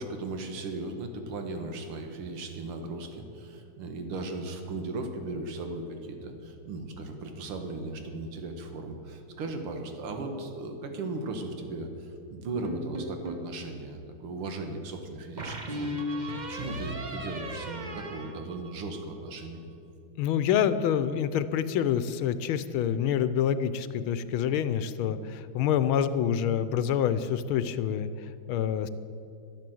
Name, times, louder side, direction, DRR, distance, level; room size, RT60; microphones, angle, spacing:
voice 1, 0.0-16.0 16.5-19.6, right 2 dB, 85° right, 5 dB, 2.2 m, -37 dB
sound 1, 12.6-13.5 15.4-19.1, equal, 30° right, 0.9 m, -36 dB
voice 2, 20.2-28.1 28.5-28.9, left 9 dB, 80° left, 13 dB, 1.5 m, -27 dB
12.0 x 12.0 x 7.7 m, 2.7 s
omnidirectional pair, 2.4 m